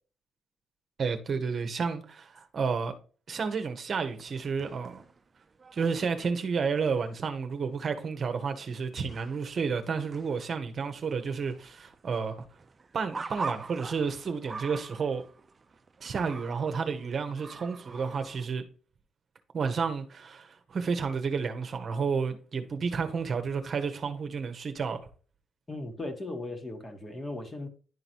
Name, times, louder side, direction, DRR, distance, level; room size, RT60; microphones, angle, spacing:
voice 1, 1.0-2.9 3.3-5.0 5.7-12.4 12.9-15.2 16.0-18.6 19.5-25.1, right 5 dB, 50° right, 0.9 m, -31 dB
sound 1, 3.9-7.3 7.6-7.7 7.9-9.8 10.1-18.5, right 4 dB, 30° right, 0.5 m, -44 dB
voice 2, 25.7-27.7, left 2 dB, 25° left, 1.6 m, -37 dB
11.0 x 3.9 x 2.9 m
cardioid pair, 90°, 0 cm